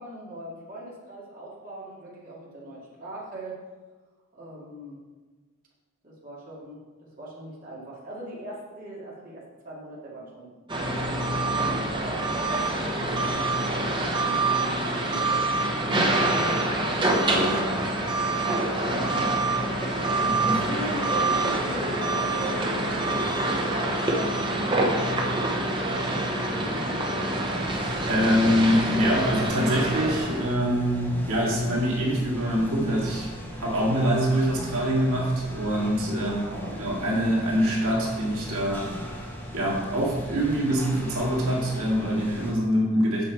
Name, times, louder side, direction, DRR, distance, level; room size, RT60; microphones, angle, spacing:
voice 1, 0.0-3.6 4.3-5.0 6.0-6.8 7.2-10.5 10.8-12.3 13.0-14.8 15.1-16.8 17.1-17.8 20.4-27.2 36.2-36.8, right 1 dB, 40° right, -7 dB, 2.1 m, -40 dB
sound 1, 10.7-30.5, right 2 dB, 20° right, 0.8 m, -26 dB
voice 2, 17.2-17.8 18.9-19.4 20.2-20.6 28.1-33.3 33.5-36.4 36.8-38.9 39.5-43.2, equal, 75° right, -4 dB, 2.1 m, -25 dB
sound 2, 27.5-42.5, equal, 10° left, 1.0 m, -38 dB
7.5 x 5.8 x 4.6 m, 1.4 s
head